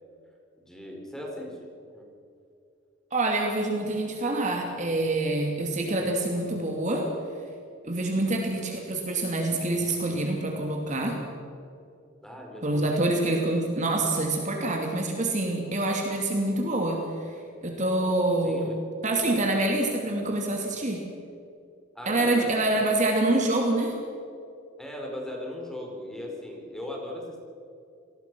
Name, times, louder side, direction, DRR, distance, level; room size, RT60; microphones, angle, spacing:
voice 1, 0.6-1.7 1.9-2.1 8.3-8.5 12.2-12.9 13.3-13.5 15.9-16.1 18.4-18.8 21.9-22.9 24.8-27.4, left 1 dB, ahead, 0 dB, 4.3 m, -38 dB
voice 2, 3.1-7.1 7.8-11.2 12.6-17.3 17.6-18.7 19.0-21.0 22.1-23.9, right 2 dB, 35° right, 1 dB, 2.6 m, -26 dB
28.5 x 19.5 x 6.1 m, 2.5 s
head